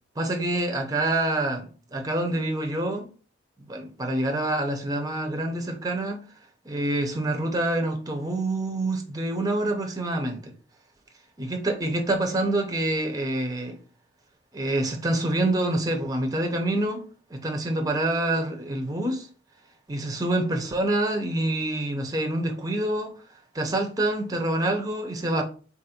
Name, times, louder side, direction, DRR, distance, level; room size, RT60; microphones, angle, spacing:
voice 1, 0.2-3.1 3.7-6.2 6.6-10.5 11.4-13.8 14.5-19.3 19.9-23.2 23.5-25.4, right 1 dB, 20° right, 0.8 m, -26 dB
4.2 x 2.6 x 4.3 m
head